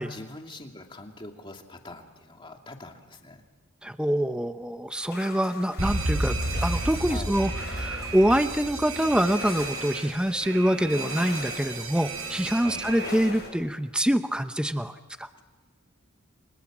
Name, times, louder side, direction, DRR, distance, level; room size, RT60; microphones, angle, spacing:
voice 1, 0.0-3.4 7.1-7.3 12.6-12.9, left 2 dB, 25° left, 3 dB, 2.5 m, -43 dB
voice 2, 3.8-15.3, equal, 5° right, 9 dB, 0.7 m, -25 dB
sound 1, 5.0-13.5, left 4 dB, 50° left, 5.5 m, -42 dB
Alarm, 5.8-13.5, right 2 dB, 70° right, 5.0 m, -32 dB
30.0 x 24.5 x 7.4 m, 1.4 s
head